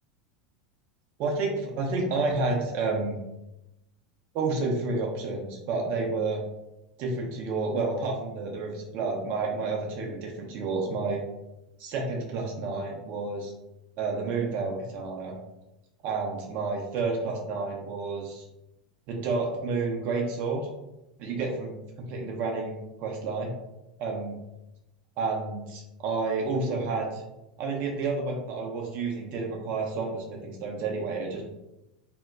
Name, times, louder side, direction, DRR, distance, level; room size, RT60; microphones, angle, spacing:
voice 1, 1.2-3.2 4.3-6.4 7.0-11.2 11.8-13.5 14.0-15.3 16.0-18.5 19.1-20.7 21.2-22.7 23.0-23.5 24.0-24.3 25.2-27.2 27.6-31.4, right 3 dB, 50° right, 0 dB, 0.5 m, -30 dB
2.1 x 2.1 x 3.4 m, 0.92 s
figure-of-eight pair, 85°, 4 cm